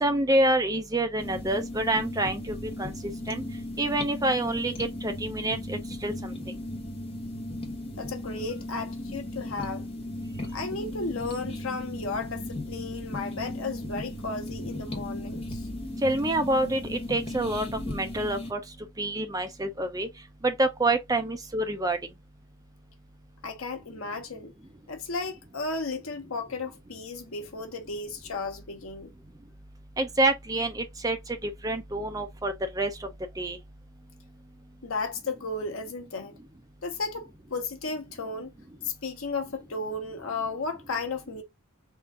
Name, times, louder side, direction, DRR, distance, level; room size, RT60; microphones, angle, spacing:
voice 1, 0.0-2.9 3.3-3.4 3.8-6.3 16.0-18.6 19.0-20.1 20.4-22.0 30.0-31.2 31.4-33.1 33.4-33.6, right 1 dB, 15° right, 0.5 m, -27 dB
sound 1, 1.2-18.5, left 1 dB, 25° left, 0.9 m, -36 dB
voice 2, 8.0-9.9 10.5-15.7 23.4-24.5 24.9-29.1 34.8-36.4 36.8-38.5 38.8-41.4, left 3 dB, 75° left, 1.0 m, -34 dB
3.7 x 2.5 x 3.6 m
head